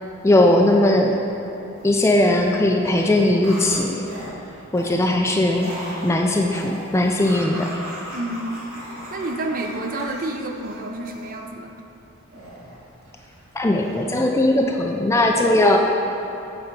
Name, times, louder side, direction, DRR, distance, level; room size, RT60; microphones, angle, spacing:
voice 1, 0.2-1.2 1.8-4.0 4.7-5.7 6.0-7.7 13.6-15.8, left 1 dB, 15° left, 2 dB, 0.3 m, -18 dB
sound 1, 1.8-2.4 2.7-11.4 12.3-13.4 13.8-14.2, right 1 dB, 80° right, 1.7 m, -38 dB
voice 2, 8.1-8.6 9.1-11.9, right 2 dB, 40° right, 4 dB, 0.5 m, -29 dB
8.1 x 4.4 x 5.2 m, 2.9 s
head